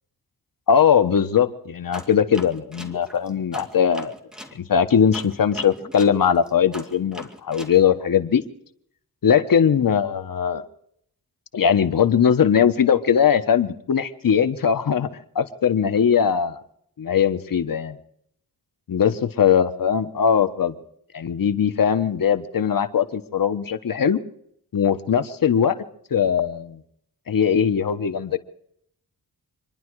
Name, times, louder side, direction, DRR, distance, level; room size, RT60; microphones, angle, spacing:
voice 1, 0.7-4.1 4.5-8.4 9.2-10.6 11.5-15.1 15.3-16.6 17.0-18.0 18.9-20.7 21.1-24.2 24.7-25.8 26.1-26.8 27.3-28.4, left 7 dB, 60° left, 10 dB, 1.3 m, -20 dB
sound 1, 1.9-4.6 5.1-7.8, equal, ahead, 2.2 m, -40 dB
26.5 x 11.0 x 4.8 m, 0.69 s
wide cardioid pair, 110°, 39 cm